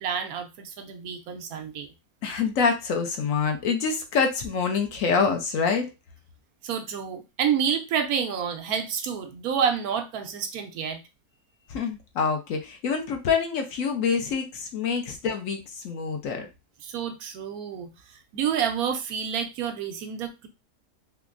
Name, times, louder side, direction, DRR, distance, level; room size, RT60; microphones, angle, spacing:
voice 1, 0.0-1.9 6.6-11.0 16.8-17.9 18.3-20.5, right 7 dB, 80° right, 1.1 m, -29 dB
voice 2, 2.2-5.9 11.7-16.5, left 5 dB, 70° left, 1.0 m, -26 dB
3.4 x 3.0 x 2.4 m
omnidirectional pair, 1.5 m